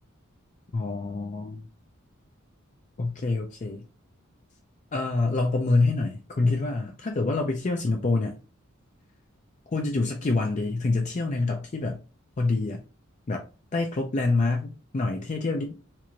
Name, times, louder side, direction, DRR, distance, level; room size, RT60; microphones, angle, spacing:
voice 1, 0.7-1.6 3.0-3.8 4.9-8.4 9.7-12.0 12.4-12.8 13.3-13.4 13.7-15.7, left 3 dB, 35° left, 0.5 m, -26 dB
4.5 x 2.5 x 2.9 m
head